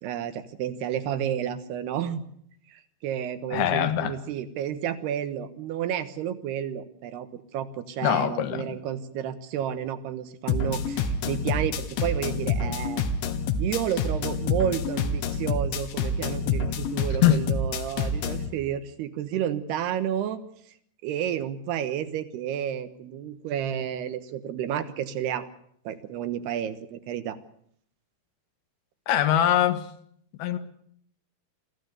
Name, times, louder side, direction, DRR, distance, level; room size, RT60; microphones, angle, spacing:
voice 1, 0.0-2.2 2.7-13.0 13.6-20.4 21.0-25.5 25.8-27.4, right 10 dB, 70° right, 3.1 m, -31 dB
voice 2, 3.5-4.1 8.0-8.7 17.2-17.4 29.1-29.8 30.4-30.6, left 11 dB, 70° left, 3.0 m, -22 dB
sound 1, 10.5-18.5, left 4 dB, 85° left, 3.9 m, -28 dB
24.5 x 15.5 x 8.3 m
omnidirectional pair, 5.2 m